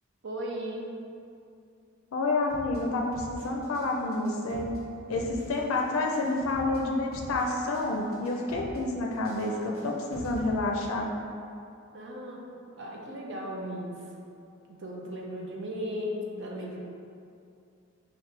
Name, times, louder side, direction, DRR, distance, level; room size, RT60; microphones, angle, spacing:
voice 1, 0.2-0.9 11.9-12.5 12.8-14.1 14.7-16.8, equal, 60° right, -1 dB, 0.7 m, -36 dB
voice 2, 2.1-4.7 5.1-11.1, left 2 dB, 80° left, 1 dB, 0.5 m, -29 dB
sound 1, 2.5-2.8 3.1-3.9 4.1-4.8 5.1-5.8 6.1-6.8 7.1-8.8 9.1-10.5, left 1 dB, 85° right, 1.5 m, -44 dB
5.8 x 2.5 x 3.2 m, 2.5 s
head